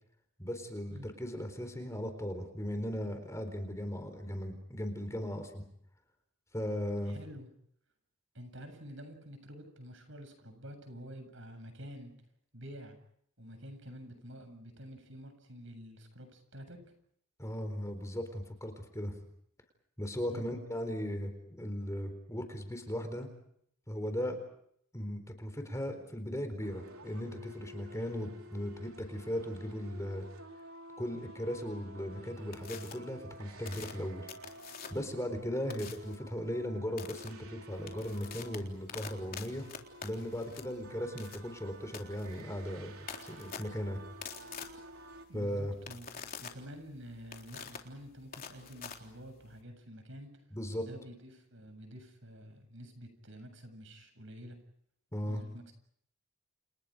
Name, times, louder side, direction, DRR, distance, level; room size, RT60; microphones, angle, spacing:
voice 1, 0.4-5.6 6.5-7.2 17.4-19.1 20.0-23.3 23.9-24.4 24.9-30.2 31.0-34.3 34.9-39.7 40.0-42.9 43.2-44.0 45.3-45.7 50.5-50.8 55.1-55.4, equal, 15° left, 7 dB, 4.2 m, -37 dB
voice 2, 7.0-7.5 8.3-12.1 12.5-13.0 13.4-16.8 20.3-20.5 35.6-35.8 45.3-50.3 50.8-54.6 55.3-55.7, equal, 65° right, 7 dB, 7.7 m, -48 dB
sound 1, 26.6-45.3, equal, 85° right, 4.0 m, -51 dB
sound 2, 32.5-32.9 33.6-35.1 35.7-36.2 37.0-37.3 37.7-49.6, left 6 dB, 40° left, 3.8 m, -47 dB
30.0 x 30.0 x 5.2 m, 0.69 s
head